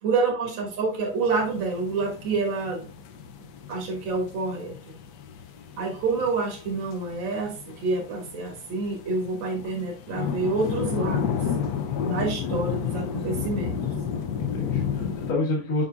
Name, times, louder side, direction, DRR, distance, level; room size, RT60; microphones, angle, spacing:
voice 1, 0.0-2.9 3.7-4.9 5.8-11.4 12.1-13.8, right 3 dB, 75° right, -1 dB, 2.3 m, -28 dB
sound 1, 1.1-15.3, left 7 dB, 70° left, 1.2 m, -32 dB
voice 2, 11.9-12.5 14.4-15.8, left 2 dB, 55° left, -4 dB, 1.9 m, -29 dB
8.1 x 5.5 x 2.4 m, 0.37 s
omnidirectional pair, 2.1 m